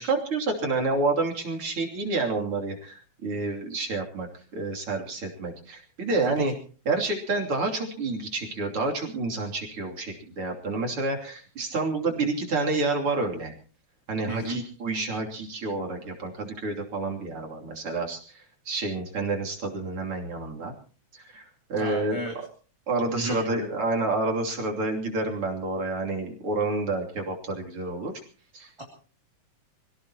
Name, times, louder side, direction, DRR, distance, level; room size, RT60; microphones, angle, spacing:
voice 1, 0.0-6.5 6.9-13.5 14.1-20.7 21.1-22.2 22.9-28.1 28.5-28.7, right 3 dB, 50° right, 1 dB, 3.8 m, -29 dB
voice 2, 14.3-14.6 21.8-22.3 23.1-23.7 28.8-28.9, right 1 dB, 10° right, 0 dB, 2.2 m, -33 dB
26.0 x 17.0 x 3.0 m, 0.38 s
omnidirectional pair, 3.3 m